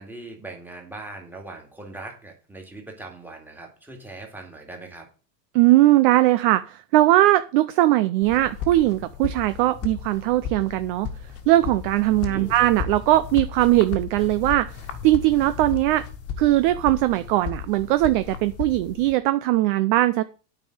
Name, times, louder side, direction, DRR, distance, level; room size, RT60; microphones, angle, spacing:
voice 1, 0.0-5.1 12.3-12.6, right 2 dB, 5° right, 2 dB, 2.2 m, -40 dB
voice 2, 5.5-11.1 11.5-16.0 16.4-20.2, right 16 dB, 35° right, 13 dB, 0.4 m, -20 dB
sound 1, 8.2-19.1, left 7 dB, 30° left, 1.6 m, -35 dB
9.1 x 5.5 x 7.8 m, 0.36 s
supercardioid pair, 150°, 49 cm